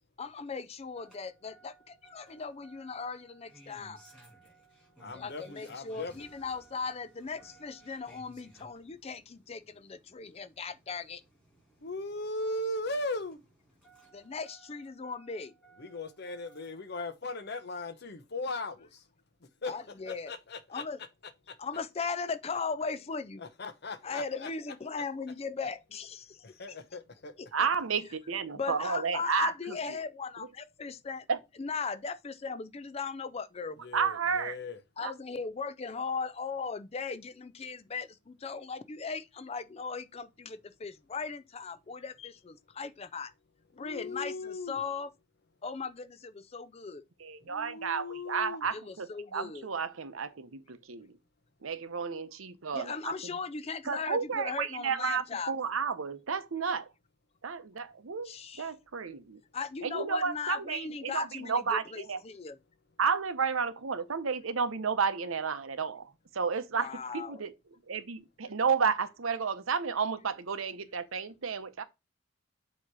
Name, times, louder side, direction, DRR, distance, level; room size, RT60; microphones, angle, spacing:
voice 1, 0.2-4.0 5.1-11.2 14.1-15.5 19.7-20.3 20.7-21.0 21.6-23.4 24.0-26.5 27.4-27.5 28.5-31.3 31.6-33.8 35.0-43.3 43.7-45.1 45.6-47.0 48.7-49.7 52.7-55.5 58.2-58.7 59.5-62.6 66.8-67.4, left 5 dB, 30° left, 0.4 m, -38 dB
Engine starting, 1.0-16.9 18.1-18.2, right 2 dB, 5° left, 3.6 m, -60 dB
voice 2, 5.0-6.3 11.8-13.4 15.8-19.0 19.6-19.7 20.1-20.8 21.5-21.6 23.4-24.5 26.4-27.3 27.6-27.7 33.8-34.8 43.7-44.8 47.4-48.7, left 2 dB, 50° left, 0.8 m, -38 dB
voice 3, 27.5-29.5 31.3-31.4 33.9-34.6 35.0-35.1 47.2-49.1 49.3-51.1 51.6-53.1 53.9-56.9 57.4-59.4 59.8-62.2 63.0-66.9 67.1-67.5 67.9-71.8, right 5 dB, 80° right, 0.8 m, -32 dB
7.3 x 3.0 x 4.7 m
head